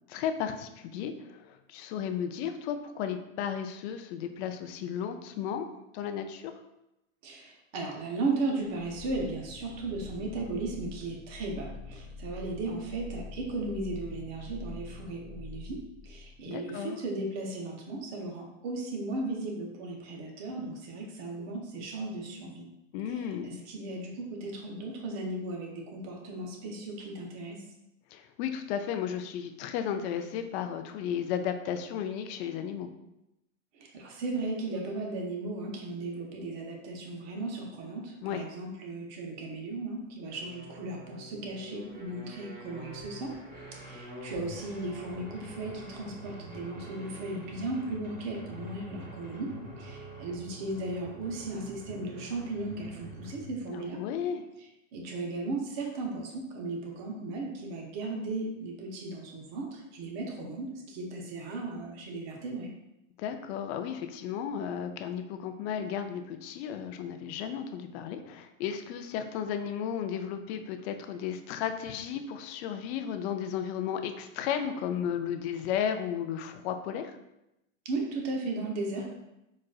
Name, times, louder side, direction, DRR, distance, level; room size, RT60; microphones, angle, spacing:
voice 1, 0.1-5.7 5.9-6.5 16.4-17.0 22.9-23.6 28.1-32.9 38.2-38.4 53.7-54.4 63.2-77.2, left 8 dB, 55° left, 7 dB, 0.4 m, -34 dB
voice 2, 7.2-22.7 23.1-27.6 33.8-43.4 43.7-54.0 54.9-62.7 77.8-79.1, right 2 dB, 45° right, 0 dB, 0.8 m, -36 dB
sound 1, 8.6-16.5, left 3 dB, 20° left, 1.1 m, -45 dB
sound 2, 40.3-53.7, equal, 25° right, 1.3 m, -45 dB
4.0 x 2.4 x 2.3 m, 0.90 s
supercardioid pair, 125°, 40 cm